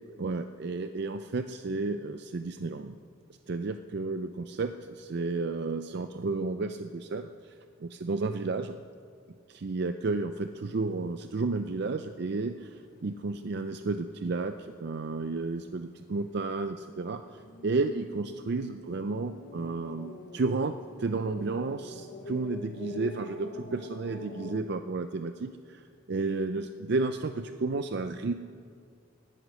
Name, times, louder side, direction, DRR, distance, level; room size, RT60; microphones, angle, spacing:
voice 1, 0.2-3.0 3.5-7.3 7.8-8.7 9.5-12.7 13.0-17.2 17.6-25.8 26.1-28.3, right 3 dB, 55° right, 9 dB, 0.5 m, -32 dB
sound 1, 10.5-24.6, left 2 dB, 45° left, 1.1 m, -47 dB
16.5 x 11.0 x 6.4 m, 2.2 s
head